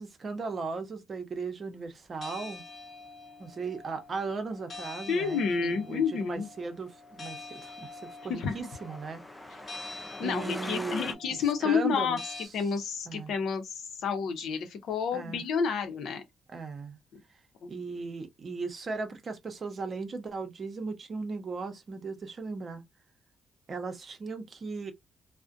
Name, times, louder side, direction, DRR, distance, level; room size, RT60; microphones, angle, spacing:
voice 1, 0.0-2.6 3.4-6.9 7.2-9.2 10.2-12.2 13.1-13.3 15.1-15.4 16.5-17.0 17.7-22.8 23.7-24.9, right 4 dB, 45° right, 0.7 m, -37 dB
sound 1, 2.2-12.5, left 3 dB, 45° left, 0.9 m, -46 dB
voice 2, 5.1-6.5 8.3-8.5 10.2-12.2 12.5-16.2 17.1-17.2 17.6-17.7, left 6 dB, 75° left, 0.6 m, -30 dB
Truck, 7.0-11.2, left 1 dB, 10° left, 0.3 m, -43 dB
2.5 x 2.1 x 2.4 m
cardioid pair, 90°, 0 cm